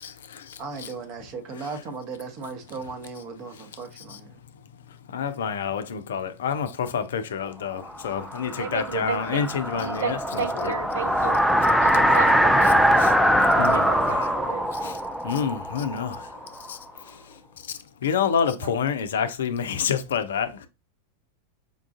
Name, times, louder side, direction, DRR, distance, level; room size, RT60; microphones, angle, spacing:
voice 1, 0.0-0.9 5.1-10.7 13.0-13.1 13.6-14.3 14.8-15.0 15.2-16.3 16.7-16.8 17.7-20.5, left 7 dB, 60° left, 0.4 m, -28 dB
voice 2, 0.6-4.4, right 4 dB, 40° right, 0.8 m, -36 dB
sound 1, 7.9-16.7, equal, ahead, 0.4 m, -22 dB
voice 3, 8.6-9.4 9.7-11.4 11.8-12.8 13.5-14.7 18.6-18.7, right 6 dB, 65° right, 0.6 m, -32 dB
5.1 x 2.4 x 2.5 m
figure-of-eight pair, 90°, 0 cm